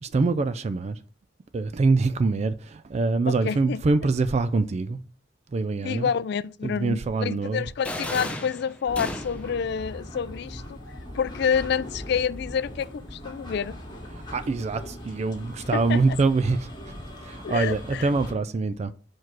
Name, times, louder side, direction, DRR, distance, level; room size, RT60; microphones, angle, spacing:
voice 1, 0.0-1.0 1.5-5.0 5.5-6.1 6.6-7.7 14.1-18.9, right 3 dB, 35° right, 0.3 m, -25 dB
voice 2, 3.3-3.8 5.8-10.8 11.1-13.8 15.7-16.0 17.4-18.1, left 7 dB, 60° left, 0.3 m, -28 dB
sound 1, 7.8-9.6, left 1 dB, 5° left, 0.8 m, -34 dB
sound 2, 8.9-18.3, left 1 dB, 25° left, 1.5 m, -40 dB
4.6 x 4.6 x 6.0 m
head